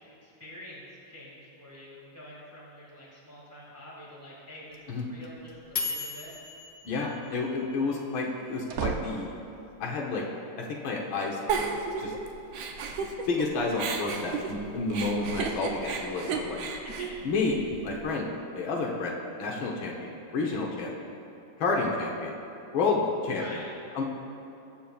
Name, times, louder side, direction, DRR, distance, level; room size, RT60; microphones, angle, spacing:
voice 1, 0.0-6.4 16.6-17.2 23.4-23.8, left 1 dB, 10° right, -6 dB, 1.7 m, -47 dB
sound 1, 4.7-8.0, left 5 dB, 55° left, 1.1 m, -36 dB
sound 2, 5.5-6.0 8.3-9.8, right 6 dB, 70° right, 0.9 m, -36 dB
voice 2, 6.8-9.4 9.8-10.2 10.6-12.1 12.9-16.6 17.2-21.1 21.6-22.4 22.7-23.6 24.0-24.1, left 3 dB, 90° left, -2 dB, 1.8 m, -30 dB
Giggle, 11.5-13.5 13.8-18.0, right 5 dB, 85° right, 1.5 m, -33 dB
20.5 x 7.0 x 2.3 m, 2.9 s
omnidirectional pair, 2.1 m